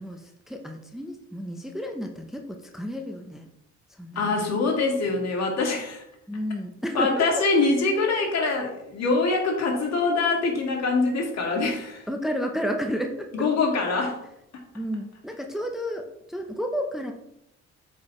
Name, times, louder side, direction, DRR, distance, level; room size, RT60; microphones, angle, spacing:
voice 1, 0.0-3.5 4.0-4.5 6.3-7.2 12.1-13.3 14.7-17.1, equal, ahead, 3 dB, 0.7 m, -31 dB
voice 2, 4.2-6.0 6.9-12.0 13.3-14.2, left 3 dB, 60° left, 0 dB, 2.1 m, -24 dB
8.2 x 4.8 x 3.2 m, 0.82 s
cardioid pair, 90°, 30 cm